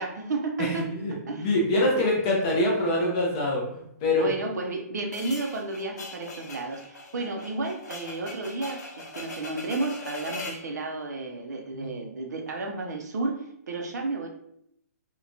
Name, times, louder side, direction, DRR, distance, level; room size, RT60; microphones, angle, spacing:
voice 1, 0.0-1.5 1.9-2.1 4.2-14.3, right 3 dB, 80° right, 3 dB, 0.6 m, -32 dB
voice 2, 0.6-4.3 11.7-11.9, left 1 dB, 15° left, -3 dB, 0.3 m, -25 dB
sound 1, 5.1-10.7, left 2 dB, 85° left, 0.8 m, -40 dB
2.8 x 2.2 x 2.5 m, 0.73 s
hypercardioid pair, 180°, 9 cm